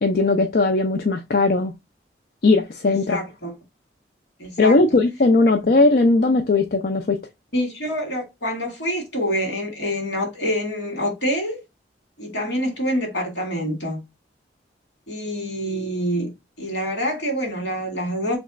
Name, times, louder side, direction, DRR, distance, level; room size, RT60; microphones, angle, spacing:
voice 1, 0.0-1.7 2.4-3.2 4.6-7.2, left 3 dB, 55° left, 0.5 m, -18 dB
voice 2, 2.8-3.6 4.4-4.8 5.6-5.7 7.5-11.6 12.2-14.0 15.1-16.3 16.6-18.4, equal, 75° left, 2.1 m, -26 dB
3.4 x 3.1 x 3.7 m
head